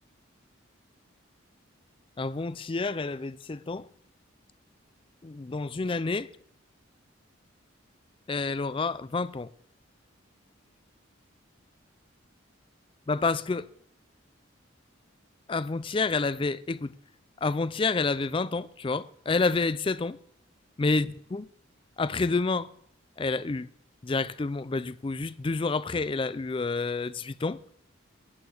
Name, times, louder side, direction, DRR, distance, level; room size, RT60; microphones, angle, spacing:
voice 1, 2.2-3.9 5.2-6.3 8.3-9.5 13.1-13.7 15.5-16.9 17.4-20.2 20.8-21.5 22.0-22.7 23.2-23.7 24.0-27.6, left 3 dB, 25° left, 0.4 m, -29 dB
11.5 x 8.9 x 6.5 m
head